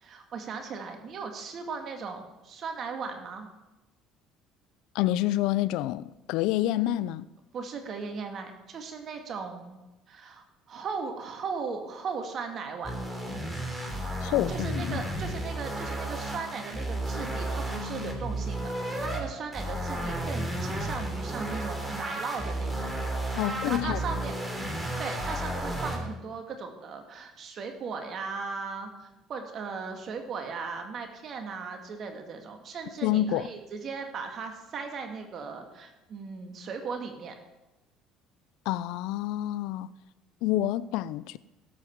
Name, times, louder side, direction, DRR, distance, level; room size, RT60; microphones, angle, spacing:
voice 1, 0.0-3.5 7.5-9.8 10.1-12.9 14.2-18.7 19.0-22.9 23.3-24.3 25.0-37.4, right 5 dB, 50° right, 2.0 m, -37 dB
voice 2, 4.9-7.3 14.2-15.0 23.4-24.0 33.0-33.5 38.7-39.9 40.4-41.4, left 14 dB, 75° left, 0.4 m, -28 dB
sound 1, 12.8-19.2 19.5-26.0, right 1 dB, 15° right, 3.3 m, -33 dB
17.0 x 7.8 x 4.6 m
supercardioid pair, 80°, 0 cm